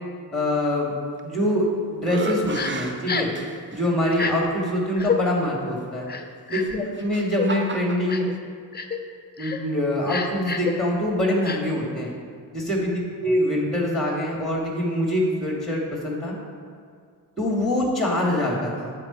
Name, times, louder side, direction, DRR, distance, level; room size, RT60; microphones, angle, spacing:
voice 1, 0.3-0.9 1.2-1.7 1.9-3.3 3.7-6.1 6.5-8.3 9.4-12.1 12.5-16.4 17.4-18.9, left 1 dB, ahead, -2 dB, 2.2 m, -24 dB
sound 1, 1.2-1.6 2.0-3.9 4.6-4.7 6.5-8.2, right 3 dB, 25° right, 0.8 m, -33 dB
Crying sobbing, 2.5-2.7 3.1-3.4 4.1-4.3 5.0-5.2 6.1-6.8 7.3-7.5 8.1-8.3 8.7-9.0 9.4-9.6 10.1-10.7 11.4-11.6, left 5 dB, 20° left, 0.9 m, -28 dB
7.6 x 7.1 x 4.5 m, 2.2 s
hypercardioid pair, 45°, 48 cm